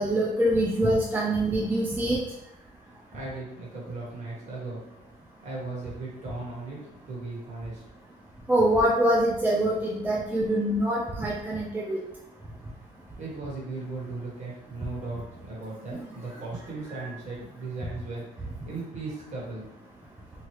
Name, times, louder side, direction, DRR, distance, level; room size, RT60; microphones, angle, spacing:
voice 1, 0.0-2.2 8.5-12.0, right 1 dB, 10° right, -4 dB, 0.4 m, -24 dB
voice 2, 3.1-4.8 5.4-6.8 7.1-7.8 13.2-19.7, right 3 dB, 45° right, -5 dB, 1.4 m, -37 dB
3.0 x 2.3 x 3.1 m, 0.87 s
cardioid pair, 110°, 17 cm